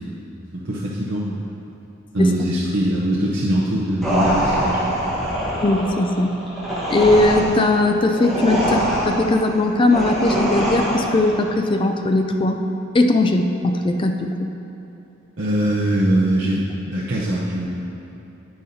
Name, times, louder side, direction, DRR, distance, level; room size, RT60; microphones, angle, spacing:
voice 1, 0.5-1.4 2.1-4.9 15.4-17.7, right 1 dB, 55° right, -7 dB, 0.8 m, -22 dB
sound 1, 4.0-11.4, equal, ahead, 1.4 m, -23 dB
voice 2, 5.6-6.3 6.9-12.6 12.9-14.4, left 2 dB, 20° left, 5 dB, 0.3 m, -19 dB
9.4 x 9.0 x 2.8 m, 2.9 s
head